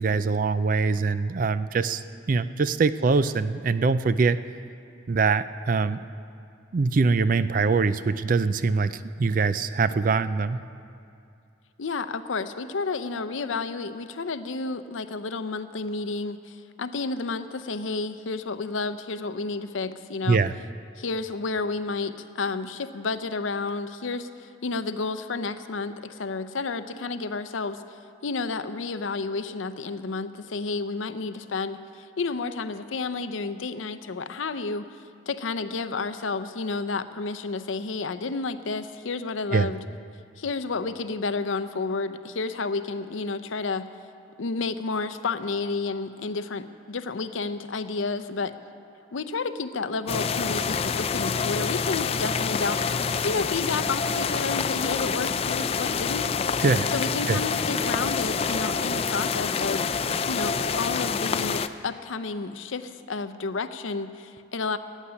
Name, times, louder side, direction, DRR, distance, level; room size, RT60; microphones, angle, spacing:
voice 1, 0.0-4.4 5.1-6.0 6.7-10.6 20.3-20.5 39.5-39.7 56.6-56.9 57.3-57.4, right 4 dB, 45° right, 14 dB, 0.4 m, -23 dB
voice 2, 11.8-20.4 21.0-34.9 35.3-39.8 40.4-43.9 44.4-48.5 49.1-52.9 53.2-56.6 56.9-59.9 60.3-64.8, left 4 dB, 80° left, 11 dB, 0.6 m, -31 dB
sound 1, 50.1-61.7, left 5 dB, 30° left, 0.3 m, -27 dB
14.5 x 8.1 x 9.7 m, 2.5 s
head